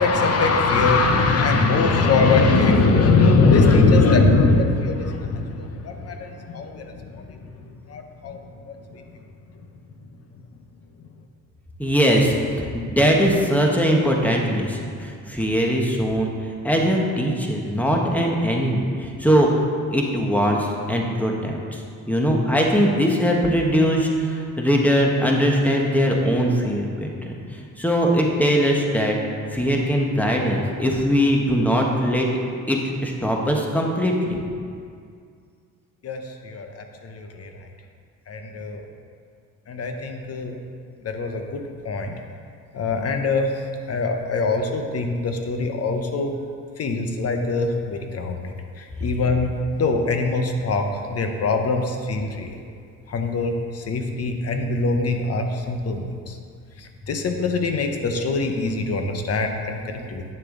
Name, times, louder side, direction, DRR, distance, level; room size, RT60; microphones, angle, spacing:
voice 1, 0.0-9.0 36.0-37.7 38.3-38.8 39.7-40.6 41.0-42.2 42.7-46.3 46.8-49.5 49.8-52.6 53.1-56.4 56.8-60.2, left 3 dB, 55° left, 4 dB, 1.0 m, -22 dB
voice 2, 11.8-16.3 16.6-19.5 19.9-21.8 22.1-29.2 29.5-32.3 32.7-34.4, equal, 5° left, 0 dB, 1.3 m, -21 dB
9.1 x 6.7 x 3.9 m, 2.2 s
cardioid pair, 90°, 30 cm